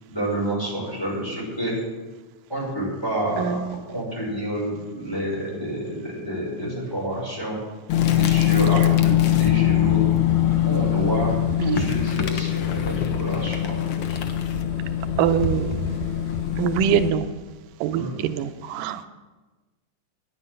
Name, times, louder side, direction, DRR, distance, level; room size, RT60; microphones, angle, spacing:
voice 1, 0.1-1.7 2.5-3.4 3.9-7.6 8.1-10.0 10.6-11.3 11.6-14.2 17.9-18.2, right 1 dB, 5° left, -6 dB, 5.1 m, -28 dB
sound 1, 7.9-17.1, left 11 dB, 70° left, 1.4 m, -22 dB
voice 2, 15.2-16.0 16.6-17.3 17.8-19.1, right 9 dB, 90° right, 10 dB, 2.2 m, -24 dB
10.0 x 9.7 x 7.8 m, 1.2 s
omnidirectional pair, 3.7 m